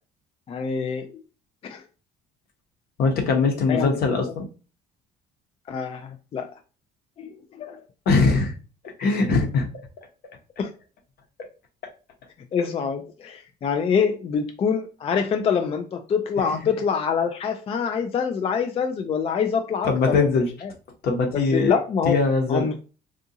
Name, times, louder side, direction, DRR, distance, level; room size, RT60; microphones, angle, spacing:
voice 1, 0.5-1.2 1.6-1.8 3.7-4.0 5.7-6.5 7.2-7.8 10.6-10.7 12.5-20.7 21.3-22.2 22.5-22.8, left 6 dB, 35° left, 0.4 m, -25 dB
voice 2, 3.0-4.5 8.1-8.5 9.0-9.6 16.4-16.6 19.8-20.5 21.0-21.7 22.0-22.7, left 4 dB, 65° left, 1.0 m, -21 dB
3.7 x 2.4 x 2.7 m
cardioid pair, 110°, 17 cm